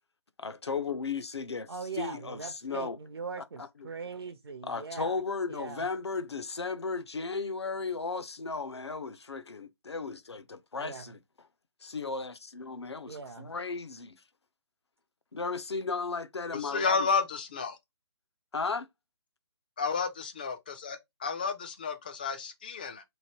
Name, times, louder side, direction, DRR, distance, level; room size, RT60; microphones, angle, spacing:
voice 1, 0.4-3.0 3.4-3.9 4.6-11.2 11.8-14.2 15.3-17.1 18.5-18.9, left 4 dB, 70° left, 0.6 m, -35 dB
voice 2, 1.7-5.2 5.5-5.8 10.8-11.0 13.1-13.5, right 5 dB, 60° right, 0.5 m, -41 dB
voice 3, 16.5-17.8 19.8-23.0, left 5 dB, 20° left, 0.3 m, -31 dB
3.1 x 2.6 x 4.2 m
figure-of-eight pair, 145°, 15 cm